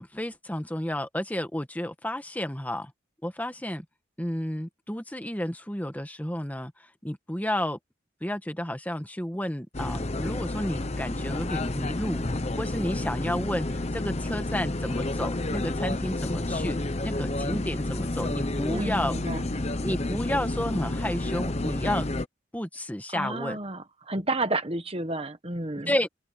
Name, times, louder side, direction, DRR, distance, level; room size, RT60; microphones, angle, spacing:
voice 1, 0.0-2.9 3.2-3.8 4.2-6.7 7.0-7.8 8.2-12.2 12.5-13.7 13.9-19.1 19.8-22.1 22.5-23.6 25.9-26.1, left 1 dB, 10° left, 1.4 m, -31 dB
sound 1, 9.7-22.3, left 2 dB, 30° left, 0.9 m, -30 dB
voice 2, 18.7-19.5 23.1-25.9, right 2 dB, 30° right, 1.4 m, -31 dB
open air
head